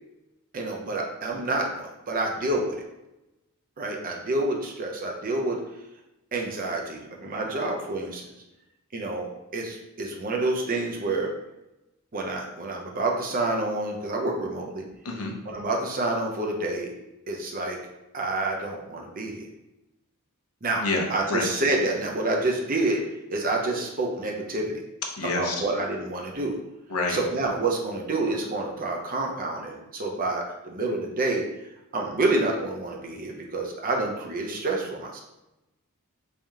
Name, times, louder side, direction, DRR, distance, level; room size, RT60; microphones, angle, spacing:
voice 1, 0.5-2.7 3.8-5.6 6.3-8.2 8.9-11.3 12.1-14.8 15.4-16.9 17.3-17.8 18.1-19.5 20.6-20.8 21.1-23.0 23.3-24.8 25.3-26.6 27.1-31.5 31.9-35.2, right 2 dB, 40° right, 0 dB, 0.6 m, -28 dB
voice 2, 25.2-25.5 26.9-27.2, left 3 dB, 75° left, 1 dB, 0.7 m, -27 dB
3.3 x 2.8 x 3.5 m, 0.93 s
head